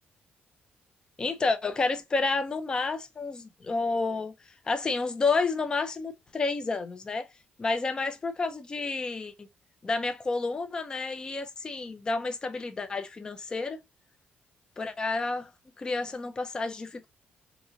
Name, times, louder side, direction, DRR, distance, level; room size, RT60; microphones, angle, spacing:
voice 1, 1.2-4.3 4.7-7.3 7.6-9.5 9.8-13.8 14.8-15.4 15.8-17.1, left 3 dB, 25° left, 0.4 m, -30 dB
3.8 x 2.9 x 2.5 m
cardioid pair, 145°, 4 cm